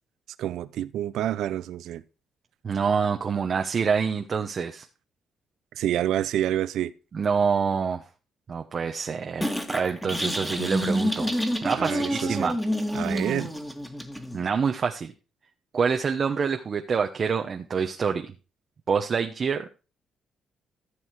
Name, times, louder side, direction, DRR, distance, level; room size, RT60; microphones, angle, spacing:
voice 1, 0.4-2.0 5.7-6.9 11.8-12.5 12.9-13.5, right 11 dB, 80° right, 0.7 m, -28 dB
voice 2, 2.6-4.9 7.1-8.0 8.5-11.3 11.6-12.5 14.3-15.1 15.7-18.3 18.9-19.7, right 6 dB, 45° right, 1.0 m, -26 dB
sound 1, 9.4-14.4, equal, 5° left, 2.1 m, -28 dB
14.5 x 6.3 x 4.7 m
cardioid pair, 90°, 0 cm